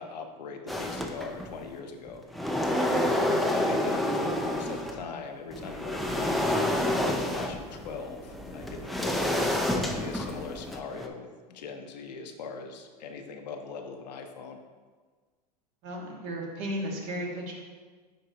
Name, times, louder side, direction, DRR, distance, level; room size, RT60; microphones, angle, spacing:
voice 1, 0.0-2.2 2.8-14.6, left 5 dB, 85° left, 5 dB, 0.8 m, -40 dB
sound 1, 0.7-1.6 2.1-5.0 5.5-11.1, left 1 dB, ahead, 0.4 m, -29 dB
voice 2, 15.8-17.5, equal, 55° right, -1 dB, 1.7 m, -34 dB
9.3 x 3.8 x 2.8 m, 1.4 s
hypercardioid pair, 115°, 21 cm